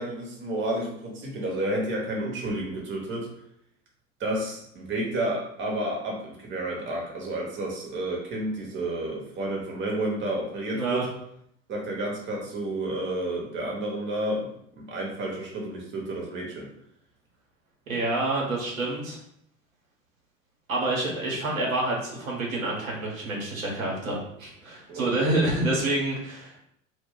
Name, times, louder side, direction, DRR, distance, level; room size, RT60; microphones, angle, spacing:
voice 1, 0.0-3.3 4.2-11.0 11.7-16.7 24.9-25.3, right 1 dB, 30° right, -1 dB, 0.9 m, -31 dB
voice 2, 10.7-11.0 17.9-19.2 20.7-26.6, right 2 dB, 80° right, -3 dB, 0.9 m, -28 dB
2.2 x 2.2 x 3.7 m, 0.71 s
figure-of-eight pair, 75°, 40 cm